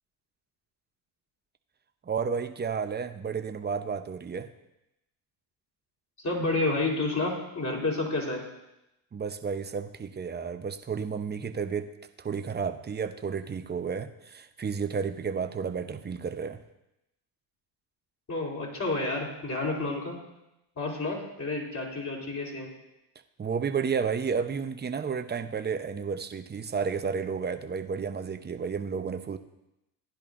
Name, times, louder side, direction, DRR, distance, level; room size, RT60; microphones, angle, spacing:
voice 1, 2.0-4.5 9.1-11.9 12.2-16.6 23.4-29.4, right 6 dB, 20° right, 8 dB, 0.8 m, -32 dB
voice 2, 6.2-8.4 18.3-20.2 20.8-22.7, left 2 dB, 35° left, -1 dB, 3.8 m, -30 dB
15.5 x 10.5 x 2.6 m, 0.90 s
supercardioid pair, 75°, 48 cm